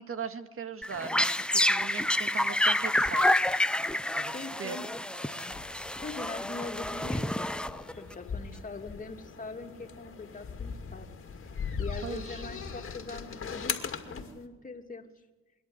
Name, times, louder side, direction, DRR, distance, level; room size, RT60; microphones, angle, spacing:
voice 1, 0.0-3.3 4.1-4.3 4.6-4.8 11.6-11.8 12.0-12.4, right 6 dB, 45° right, 9 dB, 1.9 m, -39 dB
sound 1, 0.8-8.1, left 1 dB, 5° left, 0.7 m, -28 dB
voice 2, 4.3-7.5 8.0-11.1 11.8-15.0, left 3 dB, 25° left, 3 dB, 2.7 m, -42 dB
sound 2, 5.5-14.4, left 6 dB, 45° left, 2.4 m, -40 dB
25.5 x 11.0 x 9.7 m, 1.2 s
cardioid pair, 90°, 30 cm